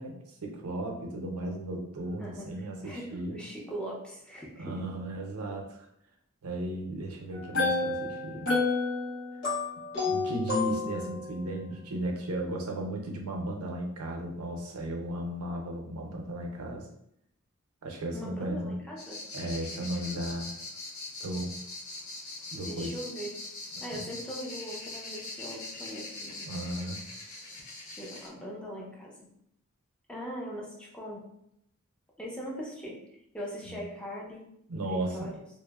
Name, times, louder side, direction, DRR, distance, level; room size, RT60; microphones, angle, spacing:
voice 1, 0.0-3.4 4.6-5.9 6.4-8.5 10.0-16.9 17.8-18.8 19.3-20.6 21.2-21.5 22.5-22.9 23.8-24.1 26.5-27.0 33.7-33.8 34.7-35.3, right 1 dB, 85° right, 1 dB, 0.5 m, -35 dB
voice 2, 2.2-4.7 18.1-19.2 22.6-23.3 23.8-26.4 27.9-29.1 30.1-31.2 32.2-33.0 33.3-34.4 34.8-35.3, equal, 5° left, -4 dB, 0.5 m, -40 dB
sound 1, 7.3-11.3, left 3 dB, 55° left, 1.0 m, -30 dB
sound 2, 19.0-28.3, left 2 dB, 70° left, 0.6 m, -42 dB
2.8 x 2.0 x 2.2 m, 0.76 s
head